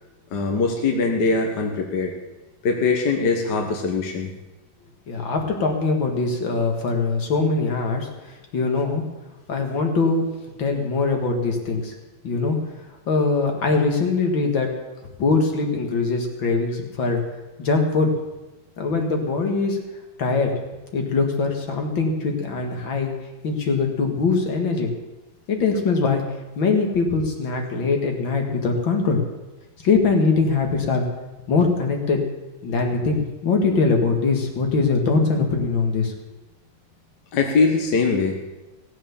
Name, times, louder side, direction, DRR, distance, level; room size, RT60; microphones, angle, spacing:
voice 1, 0.3-2.1 2.6-4.3 37.3-38.4, left 4 dB, 65° left, 3 dB, 1.8 m, -21 dB
voice 2, 5.1-9.1 9.5-10.3 10.6-11.9 12.2-12.6 13.1-14.7 15.2-17.3 17.6-18.1 18.8-19.8 20.2-20.6 20.9-23.1 23.4-24.9 25.5-26.2 26.6-29.2 29.8-31.0 31.5-32.3 32.6-36.1, left 4 dB, 80° left, 3 dB, 2.6 m, -22 dB
16.5 x 7.7 x 7.1 m, 1.1 s
omnidirectional pair, 2.1 m